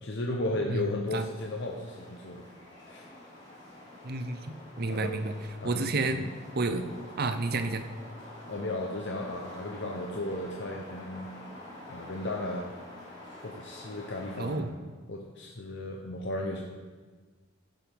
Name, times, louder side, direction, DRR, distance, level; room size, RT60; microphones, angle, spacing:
voice 1, 0.0-2.4 2.8-3.1 4.9-5.2 5.6-6.3 8.5-11.3 11.9-12.7 13.4-14.8 15.1-16.7, left 1 dB, 55° left, 1 dB, 0.8 m, -35 dB
sound 1, 1.0-14.5, left 1 dB, 25° left, 3.6 m, -47 dB
voice 2, 4.0-5.3 5.6-6.2 6.5-6.9 7.2-7.8 14.4-14.7, right 3 dB, 45° right, 9 dB, 0.7 m, -30 dB
15.5 x 7.7 x 3.5 m, 1.4 s
head